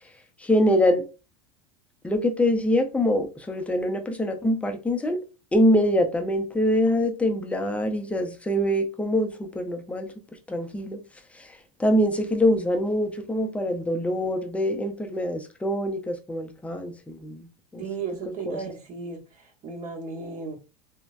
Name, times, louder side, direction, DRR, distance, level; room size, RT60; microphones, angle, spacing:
voice 1, 0.4-1.0 2.0-5.2 5.5-10.1 10.5-11.0 11.4-11.5 11.8-17.5 17.7-17.8 18.5-18.6, left 1 dB, 5° left, 0.5 m, -24 dB
voice 2, 17.8-20.5, right 4 dB, 45° right, 1.0 m, -35 dB
3.1 x 2.1 x 2.4 m
hypercardioid pair, 95°, 18 cm